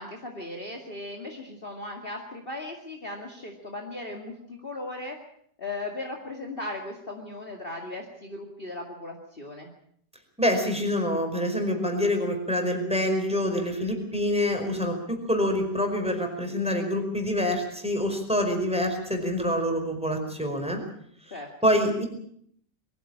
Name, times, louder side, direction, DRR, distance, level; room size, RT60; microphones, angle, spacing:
voice 1, 0.0-5.2 5.6-9.7 21.3-21.7, left 2 dB, 35° left, 1 dB, 2.5 m, -37 dB
voice 2, 10.4-20.8 21.6-22.0, equal, 5° right, 4 dB, 5.0 m, -26 dB
23.0 x 15.5 x 8.7 m, 0.66 s
omnidirectional pair, 1.8 m